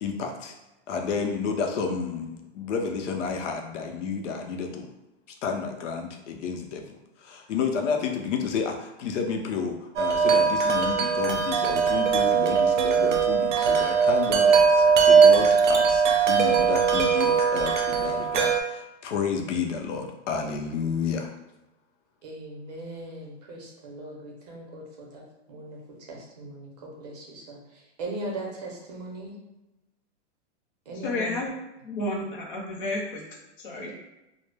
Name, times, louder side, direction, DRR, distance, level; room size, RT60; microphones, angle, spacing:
voice 1, 0.0-0.5 0.9-4.9 5.4-6.9 7.2-21.3, left 5 dB, 90° left, 4 dB, 0.6 m, -31 dB
Wind chime, 10.0-18.6, right 6 dB, 85° right, 0.6 m, -20 dB
voice 2, 22.2-25.2 25.5-25.8 26.1-29.4 30.9-31.4 33.8-33.9, right 2 dB, 35° right, -2 dB, 0.6 m, -39 dB
voice 3, 31.0-31.5 31.8-33.2 33.6-33.9, left 2 dB, 45° left, -1 dB, 0.6 m, -31 dB
2.1 x 2.0 x 3.2 m, 0.99 s
supercardioid pair, 180°, 35 cm